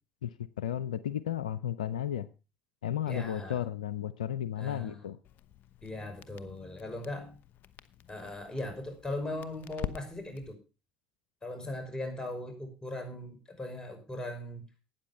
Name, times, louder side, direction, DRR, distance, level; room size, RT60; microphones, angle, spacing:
voice 1, 0.2-2.3 2.8-5.2, left 10 dB, 90° left, 17 dB, 0.5 m, -34 dB
voice 2, 3.1-3.6 4.6-5.0 5.8-7.4 8.1-10.6 11.4-14.6, left 1 dB, 20° left, 6 dB, 5.7 m, -39 dB
Crackle, 5.2-10.5, left 10 dB, 55° left, 1.0 m, -46 dB
13.0 x 9.3 x 5.3 m, 0.32 s
hypercardioid pair, 65°, 4 cm